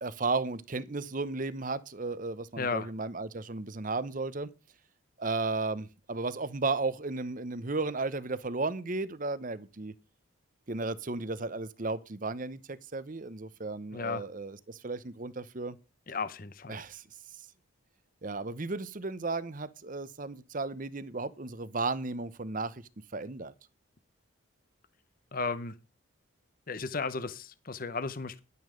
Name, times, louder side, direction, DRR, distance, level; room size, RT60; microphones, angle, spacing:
voice 1, 0.0-4.5 5.2-9.9 10.7-15.8 16.7-17.0 18.2-22.8 23.1-23.5, right 3 dB, 40° right, 0.8 m, -34 dB
voice 2, 2.6-2.9 13.9-14.2 16.1-16.8 25.3-25.7 26.7-28.4, left 4 dB, 45° left, 0.8 m, -34 dB
11.0 x 9.5 x 5.1 m
head